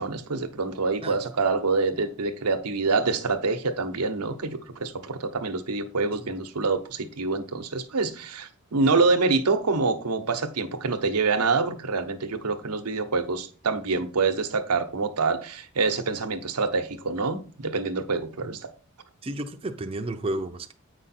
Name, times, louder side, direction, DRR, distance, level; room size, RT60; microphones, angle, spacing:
voice 1, 0.0-18.7, right 4 dB, 90° right, 0.9 m, -26 dB
voice 2, 19.2-20.7, right 1 dB, 25° right, 0.5 m, -32 dB
8.1 x 5.1 x 4.2 m
head